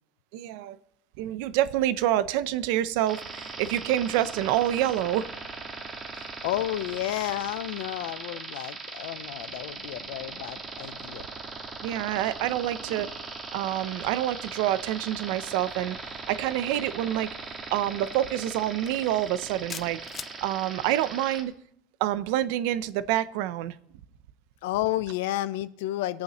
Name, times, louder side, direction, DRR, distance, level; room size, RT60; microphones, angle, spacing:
voice 1, 0.3-0.8 1.2-5.3 11.8-13.1 13.5-16.0 16.3-17.3 17.7-20.0 20.4-21.5 22.0-23.8, right 13 dB, 60° right, 0.6 m, -27 dB
sound 1, 3.1-21.4, right 4 dB, 20° right, 1.7 m, -39 dB
voice 2, 6.1-11.3 24.6-26.2, left 14 dB, 70° left, 0.6 m, -31 dB
sound 2, 18.9-19.0 19.7-20.4, left 7 dB, 20° left, 0.4 m, -38 dB
20.5 x 8.5 x 3.0 m
supercardioid pair, 165°, 0 cm